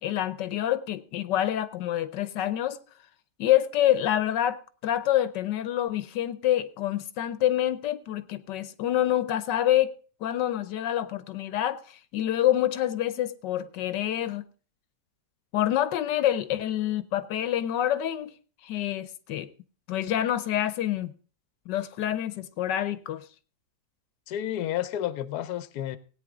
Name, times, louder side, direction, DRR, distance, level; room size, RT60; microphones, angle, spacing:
voice 1, 0.0-2.8 3.4-9.9 10.2-14.4 15.5-18.3 18.6-19.5 19.9-21.1 21.7-23.2, left 12 dB, 85° left, 1.4 m, -27 dB
voice 2, 24.3-26.0, left 11 dB, 70° left, 1.2 m, -31 dB
17.0 x 9.2 x 3.6 m
omnidirectional pair, 1.8 m